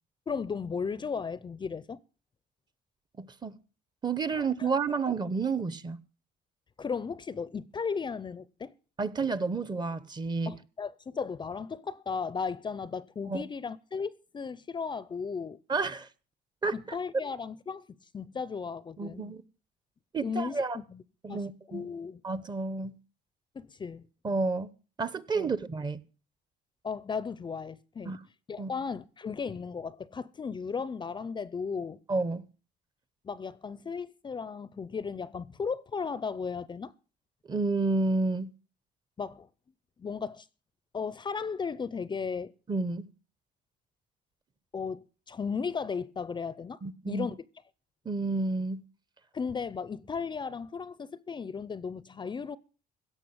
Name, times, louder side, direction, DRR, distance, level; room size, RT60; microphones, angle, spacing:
voice 1, 0.3-2.0 4.3-4.7 6.8-8.7 10.5-15.6 16.7-17.9 18.1-19.4 20.2-21.0 21.3-22.2 23.5-24.0 25.3-25.5 26.8-28.2 28.5-32.0 33.2-36.9 39.2-39.5 40.0-40.5 40.9-42.5 44.7-46.8 47.1-47.4 49.3-52.6, left 5 dB, 25° left, 0.5 m, -35 dB
voice 2, 3.2-3.6 4.0-6.0 9.0-10.6 13.3-13.4 15.7-16.1 16.6-16.7 19.0-19.4 20.1-20.8 21.2-21.9 22.2-23.0 24.2-24.7 25.0-26.0 28.1-28.2 28.6-28.7 32.1-32.5 37.5-38.5 42.7-43.1 46.8-47.3 48.0-48.8, right 4 dB, 25° right, 0.9 m, -30 dB
16.5 x 6.5 x 7.8 m
cardioid pair, 110°, 17 cm